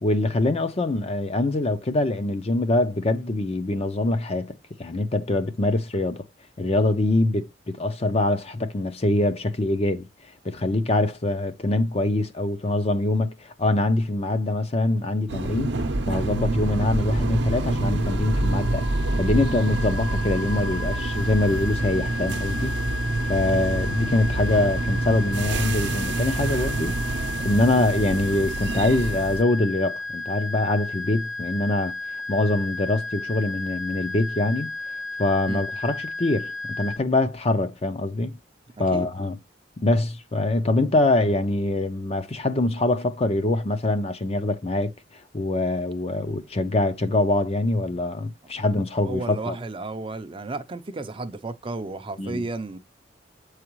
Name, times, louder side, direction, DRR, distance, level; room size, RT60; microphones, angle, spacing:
voice 1, 0.0-6.2 6.6-10.1 10.4-15.7 16.1-18.9 19.2-22.7 23.3-32.0 32.3-34.7 35.2-38.3 38.8-39.4 39.8-44.9 45.3-49.5 52.2-52.4, left 2 dB, 35° left, 0.6 m, -24 dB
sound 1, 15.3-29.4, right 2 dB, 65° right, 0.7 m, -27 dB
sound 2, 17.9-37.0, left 3 dB, 75° left, 0.8 m, -34 dB
voice 2, 49.0-52.8, right 3 dB, 30° right, 0.5 m, -33 dB
8.0 x 4.8 x 3.0 m
head